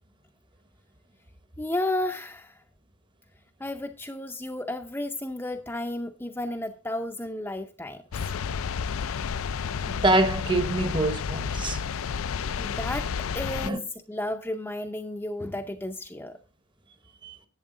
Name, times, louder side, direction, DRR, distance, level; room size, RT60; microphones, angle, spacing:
voice 1, 1.6-2.6 3.6-8.0 12.6-13.1 13.3-16.3, left 1 dB, 10° left, 0.5 m, -32 dB
sound 1, 8.1-13.7, left 6 dB, 75° left, 0.4 m, -31 dB
voice 2, 9.8-11.8 13.6-13.8 17.2-17.4, right 2 dB, 20° right, 0.9 m, -25 dB
11.0 x 8.4 x 3.7 m
head